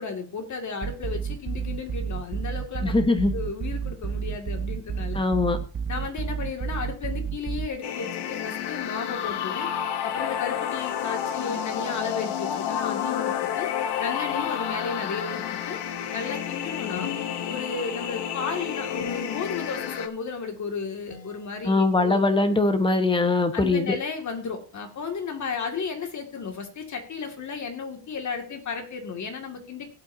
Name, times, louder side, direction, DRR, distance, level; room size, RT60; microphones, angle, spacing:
voice 1, 0.0-2.9 3.3-5.2 5.9-9.7 10.0-13.7 14.0-15.8 16.1-17.2 17.5-22.2 23.5-29.9, left 5 dB, 40° left, 4 dB, 2.3 m, -34 dB
sound 1, 0.8-7.7, right 7 dB, 20° right, 0.7 m, -31 dB
voice 2, 2.8-3.3 5.1-5.6 21.6-24.0, left 3 dB, 10° left, 8 dB, 1.3 m, -21 dB
sound 2, 7.8-20.1, left 9 dB, 60° left, 1.2 m, -30 dB
sound 3, 14.3-15.5 17.0-18.1 19.0-19.9 21.1-22.1, left 9 dB, 80° left, 2.9 m, -42 dB
17.0 x 8.8 x 2.8 m, 0.36 s
cardioid pair, 135°, 46 cm